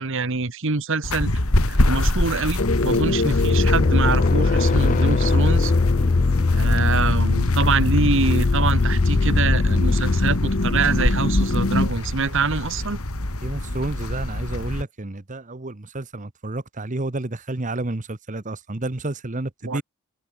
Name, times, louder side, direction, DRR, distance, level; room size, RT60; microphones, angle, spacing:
voice 1, 0.0-1.3 1.7-5.7 6.5-13.0 19.6-19.8, right 4 dB, 60° right, 1.4 m, -25 dB
sound 1, 1.0-14.8, left 1 dB, 80° left, 2.9 m, -26 dB
sound 2, 2.6-11.9, left 2 dB, 50° left, 1.0 m, -25 dB
sound 3, 3.3-10.7, left 3 dB, 35° left, 0.4 m, -21 dB
voice 2, 13.4-19.8, right 2 dB, 35° right, 1.1 m, -30 dB
head